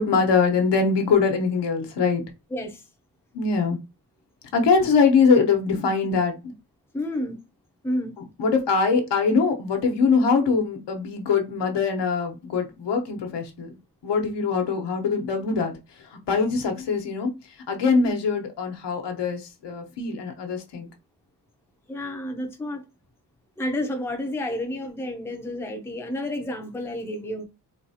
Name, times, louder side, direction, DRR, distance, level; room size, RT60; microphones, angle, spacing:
voice 1, 0.0-2.2 3.3-3.8 4.5-6.5 8.4-13.8 14.0-15.7 16.1-17.3 17.7-20.9, left 5 dB, 85° left, 1.0 m, -22 dB
voice 2, 2.5-2.8 6.9-7.4 7.8-8.1 21.9-22.8 23.6-27.4, left 1 dB, 5° left, 0.5 m, -30 dB
4.0 x 2.4 x 2.7 m
wide cardioid pair, 165°, 41 cm